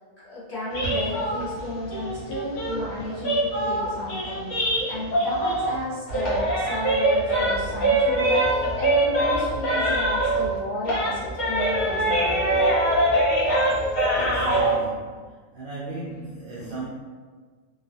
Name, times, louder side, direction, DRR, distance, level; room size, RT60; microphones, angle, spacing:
voice 1, 0.2-12.6, left 1 dB, 50° left, -11 dB, 1.4 m, -33 dB
sound 1, 0.7-5.8 6.1-10.6 10.8-14.7, right 1 dB, 85° left, 1.3 m, -23 dB
voice 2, 14.1-15.2 15.5-16.9, right 2 dB, 70° right, -7 dB, 0.5 m, -35 dB
3.2 x 2.3 x 2.6 m, 1.5 s
omnidirectional pair, 1.5 m